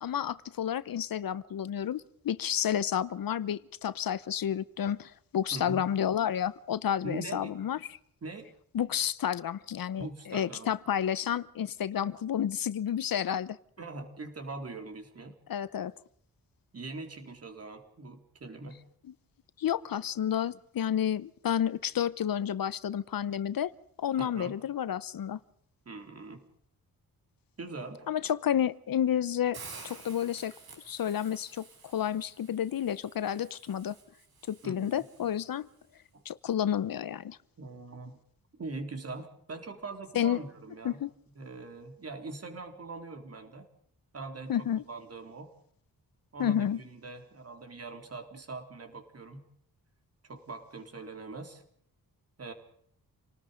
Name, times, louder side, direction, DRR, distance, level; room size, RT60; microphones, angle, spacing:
voice 1, 0.0-8.0 8.7-13.6 15.5-15.9 19.6-23.7 24.0-25.4 28.1-29.6 29.8-30.5 30.9-34.0 34.5-35.7 36.2-37.4 40.1-40.4 40.8-41.1 44.5-44.8 46.4-46.8, left 9 dB, 65° left, 0.9 m, -30 dB
voice 2, 5.5-5.8 7.0-7.6 8.2-8.5 10.0-10.7 13.8-15.4 16.7-18.8 24.2-24.5 25.9-26.4 27.6-28.1 34.6-35.0 36.1-36.2 37.6-38.2 38.5-41.0 41.4-43.7 44.1-45.5 46.3-49.4 50.2-51.6 52.4-52.5, right 3 dB, 40° right, 3.8 m, -42 dB
Hiss, 29.5-35.6, right 4 dB, 85° right, 7.7 m, -51 dB
28.0 x 19.5 x 5.2 m
wide cardioid pair, 155°, 37 cm